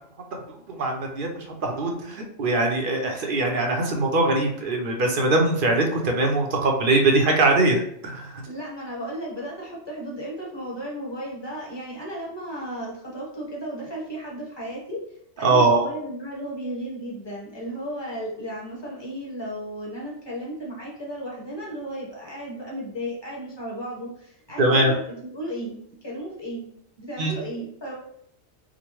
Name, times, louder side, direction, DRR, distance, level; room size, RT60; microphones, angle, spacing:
voice 1, 0.5-8.4 15.4-15.8 24.6-24.9 27.2-27.3, right 2 dB, 55° right, 1 dB, 0.8 m, -22 dB
voice 2, 8.5-15.0 15.4-26.7 27.0-27.9, equal, 25° left, -5 dB, 1.1 m, -34 dB
4.9 x 2.1 x 3.0 m, 0.70 s
omnidirectional pair, 1.2 m